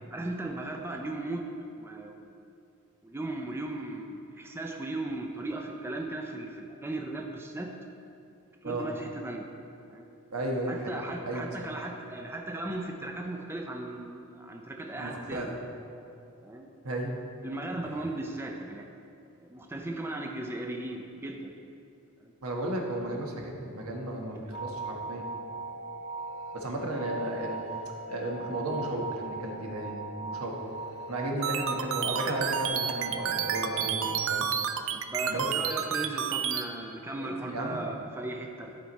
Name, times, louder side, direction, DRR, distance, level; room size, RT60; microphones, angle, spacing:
voice 1, 0.1-1.4 1.8-2.4 3.0-7.7 8.6-9.5 9.9-10.1 10.7-15.5 16.4-16.7 17.4-18.9 19.4-21.5 22.2-22.3 34.9-38.8, right 2 dB, 10° right, 1 dB, 0.5 m, -37 dB
voice 2, 10.3-11.5 14.9-15.6 16.8-17.2 22.4-25.3 26.5-27.6 28.1-30.5 31.1-34.5 35.3-35.5 37.2-37.9, right 1 dB, 80° right, 0 dB, 1.2 m, -34 dB
sound 1, 24.5-34.3, right 3 dB, 85° left, 0.7 m, -39 dB
sound 2, 31.4-36.6, right 8 dB, 65° right, 0.4 m, -30 dB
11.5 x 4.6 x 4.1 m, 2.7 s
head